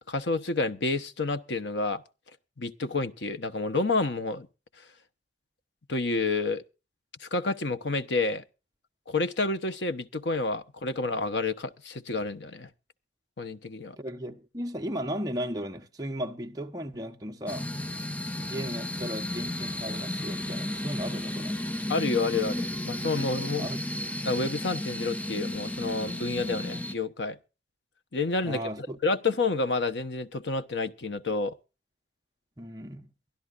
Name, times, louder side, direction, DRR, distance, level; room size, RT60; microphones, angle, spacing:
voice 1, 0.1-2.0 2.6-4.5 5.9-6.6 7.2-8.4 9.1-12.7 13.4-14.0 21.9-23.7 24.2-27.4 28.1-31.5, left 3 dB, 80° left, 1.0 m, -29 dB
voice 2, 14.0-17.7 18.4-21.6 23.6-23.8 28.4-29.0 32.6-33.1, equal, 20° right, 1.0 m, -36 dB
sound 1, 17.5-26.9, left 1 dB, 10° left, 0.5 m, -33 dB
23.0 x 12.0 x 2.5 m
head